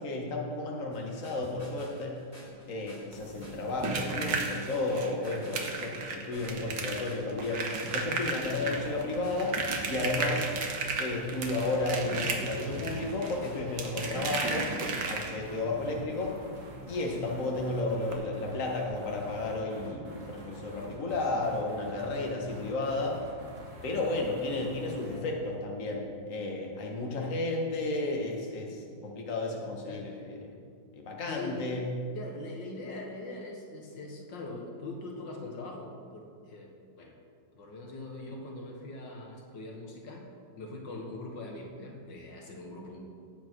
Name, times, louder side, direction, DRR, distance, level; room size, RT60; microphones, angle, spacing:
voice 1, 0.0-2.2 2.7-9.6 9.8-10.5 11.0-16.3 16.9-23.2 23.8-30.4 31.0-31.8, left 2 dB, 45° left, 0 dB, 1.9 m, -33 dB
sound 1, 0.9-14.1, equal, 20° left, 3.0 m, -48 dB
sound 2, 3.1-15.6 17.1-17.2 17.5-17.6 18.0-18.1, right 4 dB, 85° right, 2.0 m, -35 dB
sound 3, 7.9-25.3, right 1 dB, 55° right, 2.1 m, -47 dB
voice 2, 8.5-8.8 10.2-10.5 29.9-30.4 31.3-31.7 32.2-37.2 37.5-40.3 40.6-43.0, left 2 dB, 75° left, 1 dB, 2.1 m, -42 dB
18.5 x 8.4 x 4.6 m, 2.3 s
omnidirectional pair, 2.0 m